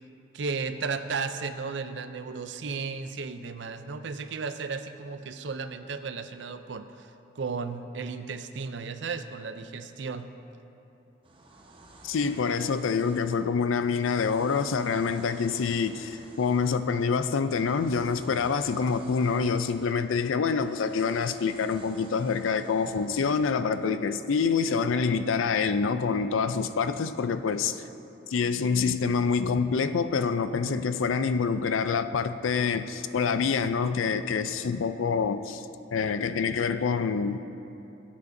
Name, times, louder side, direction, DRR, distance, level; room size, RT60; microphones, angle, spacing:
voice 1, 0.3-7.1 7.4-10.3 30.7-30.8, right 4 dB, 65° right, 9 dB, 0.5 m, -34 dB
sound 1, 11.2-24.6, right 2 dB, 25° right, 0.8 m, -53 dB
voice 2, 12.0-27.8 28.3-35.6 35.9-37.5, left 5 dB, 85° left, 11 dB, 0.4 m, -26 dB
19.0 x 8.4 x 2.7 m, 2.9 s
head